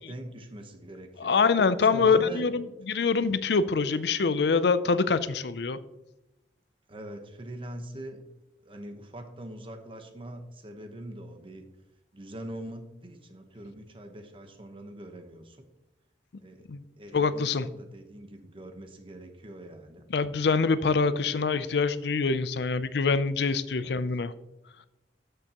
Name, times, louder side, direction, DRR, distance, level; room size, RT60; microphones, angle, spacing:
voice 1, 0.1-1.4 1.9-2.5 6.9-8.2 8.6-11.7 12.1-15.7 16.4-16.7 17.0-20.0 23.8-24.0, right 1 dB, 30° right, 5 dB, 1.0 m, -42 dB
voice 2, 1.2-5.8 16.7-16.8 17.1-17.7 20.1-24.3, left 4 dB, 70° left, 14 dB, 0.5 m, -25 dB
13.0 x 6.8 x 2.9 m, 0.96 s
head